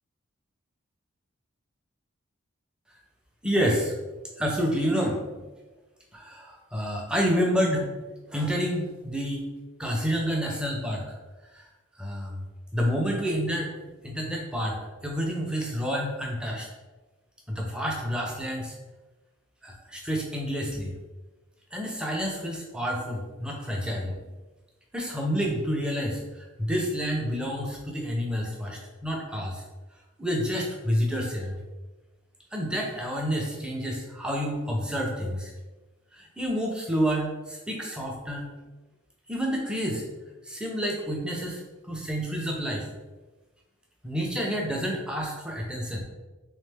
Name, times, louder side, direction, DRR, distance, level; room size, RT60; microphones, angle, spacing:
voice 1, 3.4-3.9 4.4-5.2 6.1-7.9 8.3-9.5 9.8-11.0 11.5-11.7 12.0-12.4 12.7-13.7 14.0-14.8 15.0-16.7 17.5-18.7 19.6-20.9 21.7-24.2 24.9-29.6 30.2-31.6 32.5-35.5 36.1-38.5 39.3-40.0 40.4-42.9 44.0-46.0, equal, 5° right, -1 dB, 0.5 m, -29 dB
3.5 x 3.2 x 3.3 m, 1.2 s
head